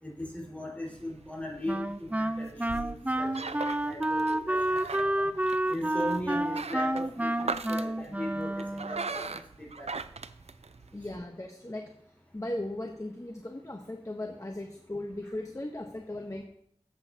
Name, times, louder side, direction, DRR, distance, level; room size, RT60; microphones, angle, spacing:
voice 1, 0.0-5.3 5.7-9.9 15.2-15.3, left 1 dB, 15° left, -4 dB, 4.5 m, -39 dB
sound 1, 0.9-11.2, right 4 dB, 85° right, 0.4 m, -40 dB
Wind instrument woodwind instrument, 1.7-9.1, right 1 dB, 15° right, 0.4 m, -30 dB
voice 2, 10.9-11.8 12.3-16.4, left 1 dB, 30° left, 3 dB, 1.0 m, -37 dB
13.5 x 8.0 x 2.8 m, 0.71 s
wide cardioid pair, 45°, 11 cm